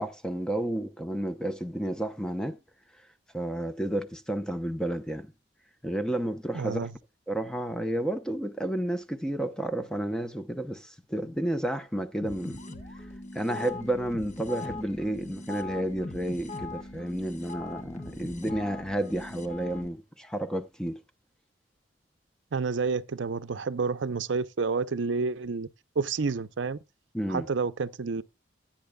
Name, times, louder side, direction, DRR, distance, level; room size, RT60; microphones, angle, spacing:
voice 1, 0.0-2.6 3.3-5.3 5.8-6.9 7.3-12.7 13.3-21.0 27.1-27.5, right 1 dB, 5° left, 0.7 m, -31 dB
voice 2, 6.5-6.9 22.5-25.7 26.0-26.8 27.3-28.2, right 4 dB, 75° right, 0.6 m, -29 dB
sound 1, 12.2-19.9, left 2 dB, 40° left, 1.0 m, -40 dB
15.5 x 8.8 x 2.2 m
head